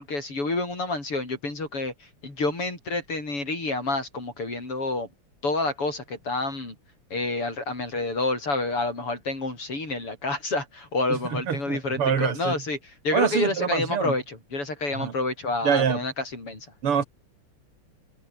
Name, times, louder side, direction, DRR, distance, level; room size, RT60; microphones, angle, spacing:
voice 1, 0.0-5.1 5.4-6.8 7.1-16.7, left 2 dB, 90° left, 8.7 m, -29 dB
voice 2, 11.1-12.5 13.1-14.1 14.9-15.1 15.6-16.0 16.8-17.0, right 7 dB, 80° right, 3.2 m, -25 dB
omnidirectional pair, 2.4 m